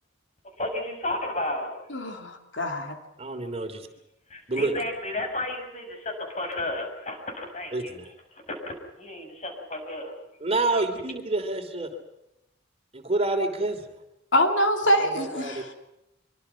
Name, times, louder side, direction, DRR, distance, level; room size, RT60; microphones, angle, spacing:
voice 1, 0.6-1.7 4.3-8.0 8.5-10.1, left 1 dB, 35° left, 4 dB, 6.8 m, -32 dB
voice 2, 1.9-3.0 14.3-15.7, equal, 70° left, 4 dB, 3.0 m, -24 dB
voice 3, 3.2-3.9 4.5-4.7 7.7-8.1 10.4-11.9 12.9-13.9 15.0-15.6, right 2 dB, 30° right, 5 dB, 3.1 m, -28 dB
25.5 x 24.5 x 5.9 m, 0.88 s
head